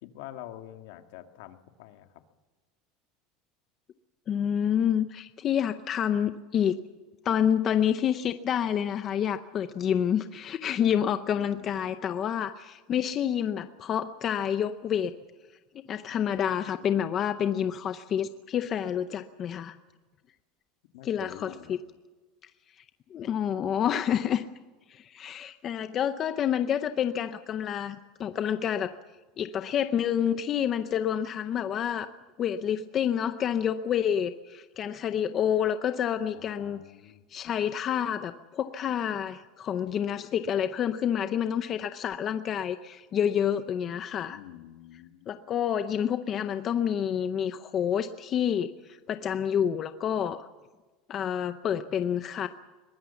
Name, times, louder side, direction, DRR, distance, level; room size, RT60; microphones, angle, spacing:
voice 1, 0.0-2.1 11.3-11.9 20.9-21.8 36.2-37.2 44.3-45.3, left 13 dB, 65° left, 6 dB, 1.9 m, -47 dB
voice 2, 4.3-6.8 7.2-15.1 15.9-19.8 21.0-21.8 23.1-24.5 24.9-28.9 29.4-32.1 32.4-36.8 37.3-44.4 45.3-48.7 49.1-50.5 51.1-52.5, left 9 dB, 25° left, 10 dB, 0.6 m, -28 dB
22.5 x 19.5 x 7.0 m, 1.2 s
cardioid pair, 180°, 0 cm